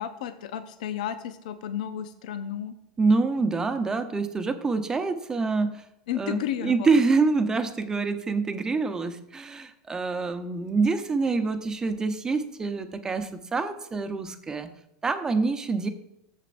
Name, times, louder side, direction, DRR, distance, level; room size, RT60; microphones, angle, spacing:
voice 1, 0.0-2.7 6.1-7.0, left 10 dB, 75° left, 10 dB, 0.6 m, -32 dB
voice 2, 3.0-5.8 6.1-14.7 15.0-15.9, right 4 dB, 15° right, 8 dB, 0.8 m, -26 dB
14.5 x 7.5 x 2.6 m, 0.81 s
supercardioid pair, 125°, 4 cm